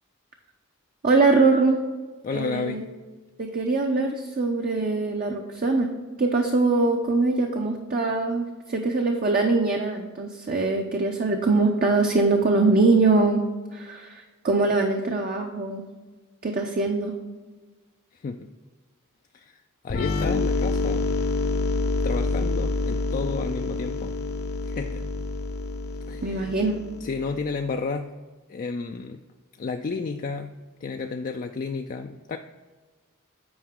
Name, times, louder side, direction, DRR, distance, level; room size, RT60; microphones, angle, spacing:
voice 1, 1.0-1.8 2.3-2.8 3.4-13.5 13.7-15.9 16.4-17.2 26.2-26.8, right 3 dB, 40° right, 3 dB, 0.6 m, -23 dB
voice 2, 2.2-2.8 18.1-18.5 19.3-19.6 19.8-21.1 22.0-24.1 24.6-25.0 26.1-26.5 27.0-28.1 28.5-29.2 29.6-32.4, left 4 dB, 40° left, 5 dB, 0.3 m, -32 dB
sound 1, 19.9-27.5, left 3 dB, 75° left, 0.7 m, -27 dB
8.7 x 4.9 x 3.6 m, 1.3 s
head